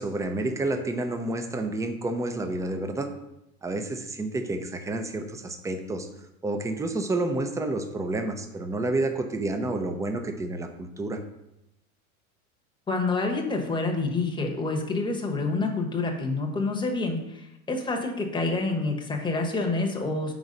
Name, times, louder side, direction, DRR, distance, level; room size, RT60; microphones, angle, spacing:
voice 1, 0.0-3.1 3.6-6.1 6.4-11.2, right 2 dB, 10° right, 6 dB, 0.5 m, -29 dB
voice 2, 12.9-17.2 17.7-20.3, left 3 dB, 10° left, 2 dB, 1.0 m, -27 dB
4.7 x 4.0 x 5.3 m, 0.88 s
hypercardioid pair, 95°, 42 cm